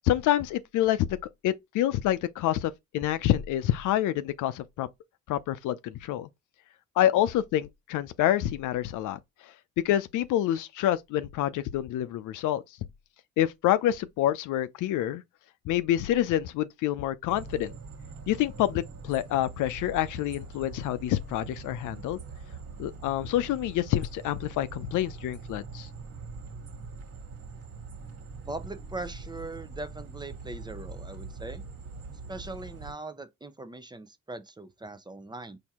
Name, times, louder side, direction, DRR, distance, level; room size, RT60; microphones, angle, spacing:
voice 1, 0.1-1.0 1.4-4.9 5.3-6.3 7.0-9.2 9.8-12.6 13.4-15.2 15.7-17.7 18.3-22.2 22.8-25.9, left 12 dB, 85° left, 0.6 m, -27 dB
sound 1, 17.3-32.9, right 4 dB, 55° right, 1.8 m, -43 dB
voice 2, 28.5-31.6 32.3-35.6, right 2 dB, 15° right, 0.6 m, -40 dB
4.4 x 2.8 x 3.6 m
cardioid pair, 90°, 30 cm